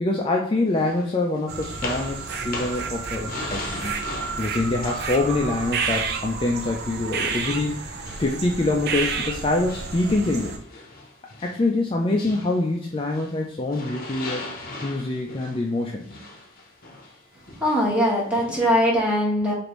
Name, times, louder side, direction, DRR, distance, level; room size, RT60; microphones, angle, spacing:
voice 1, 0.0-4.0 4.4-10.6 11.4-14.5 14.8-16.1, left 2 dB, 25° left, 0 dB, 0.3 m, -25 dB
sound 1, 0.7-6.8 7.2-13.4 13.7-18.8, left 2 dB, 45° left, 0.8 m, -39 dB
sound 2, 1.5-10.6, right 5 dB, 50° right, 0.5 m, -31 dB
voice 2, 17.6-19.5, equal, 5° right, -4 dB, 1.1 m, -21 dB
4.8 x 2.5 x 3.0 m, 0.66 s
head